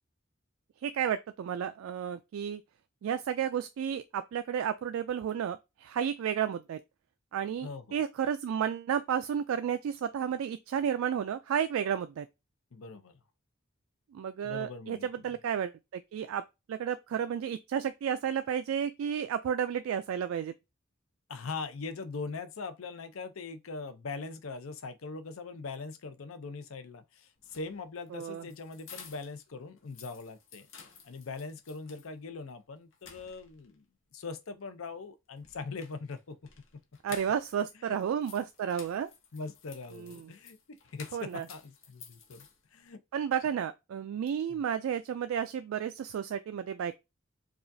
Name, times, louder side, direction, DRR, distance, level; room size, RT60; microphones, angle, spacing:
voice 1, 0.8-2.6 3.0-6.8 7.3-12.3 14.1-16.4 16.7-20.5 28.1-28.4 37.0-39.1 39.9-40.3 41.1-41.5 43.1-47.0, right 8 dB, 85° right, 0.3 m, -32 dB
voice 2, 7.6-8.0 12.7-13.2 14.4-15.3 21.3-30.7 31.0-33.8 34.1-36.4 37.7-38.0 39.3-43.0 44.5-44.6, left 4 dB, 90° left, 0.6 m, -41 dB
sound 1, 27.4-29.4 29.8-32.1 32.5-32.6 32.9-33.7 35.4-37.6 37.9-42.9, left 6 dB, 70° left, 0.9 m, -53 dB
4.8 x 2.4 x 2.6 m
head